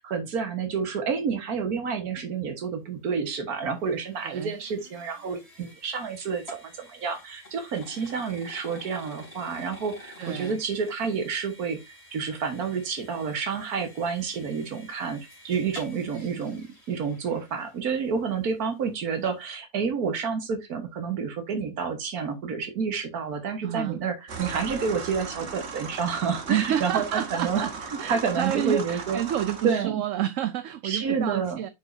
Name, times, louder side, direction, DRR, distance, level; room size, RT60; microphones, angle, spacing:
voice 1, 0.0-11.8 12.1-27.7 28.1-29.2 29.6-30.0 30.8-31.7, right 6 dB, 90° right, 1.8 m, -29 dB
sound 1, 3.0-18.2, left 1 dB, 45° left, 3.3 m, -49 dB
voice 2, 4.2-4.6 10.2-10.6 16.1-16.3 23.6-24.0 26.5-27.7 28.0-31.7, right 11 dB, 65° right, 0.9 m, -29 dB
sound 2, 24.3-29.7, right 5 dB, 50° right, 1.4 m, -37 dB
9.0 x 5.1 x 2.6 m
omnidirectional pair, 1.5 m